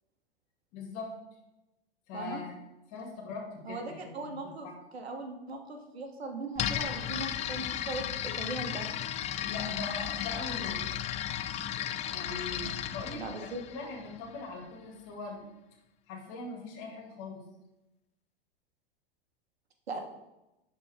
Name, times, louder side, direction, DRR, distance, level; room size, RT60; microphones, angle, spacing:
voice 1, 0.7-1.1 2.1-2.5 2.9-4.3 4.6-4.7 9.4-10.9 12.1-13.3 13.7-15.4 16.1-17.4, left 3 dB, 50° left, 2 dB, 2.2 m, -41 dB
voice 2, 3.7-4.7 4.9-8.9 13.1-13.6 19.9-20.0, right 3 dB, 85° right, 5 dB, 1.2 m, -39 dB
sound 1, 6.6-14.4, left 11 dB, 25° left, 0.3 m, -35 dB
11.5 x 4.2 x 3.5 m, 0.97 s
hypercardioid pair, 95°, 31 cm